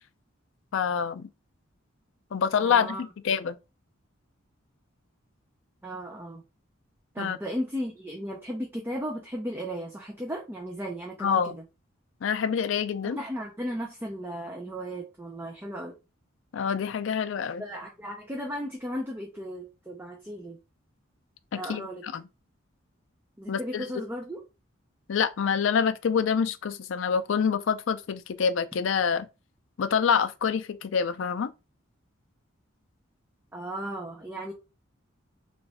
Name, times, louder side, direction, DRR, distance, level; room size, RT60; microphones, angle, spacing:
voice 1, 0.7-1.3 2.3-3.6 7.2-7.4 11.2-11.6 12.2-13.2 16.5-17.6 21.5-22.2 23.5-23.9 25.1-29.3 29.8-31.5, left 6 dB, 65° left, 0.4 m, -26 dB
voice 2, 2.6-3.0 5.8-6.4 7.1-11.6 13.0-16.0 17.6-20.6 21.5-22.0 23.4-24.4 33.5-34.5, equal, 10° right, 0.5 m, -35 dB
3.1 x 2.4 x 4.0 m
head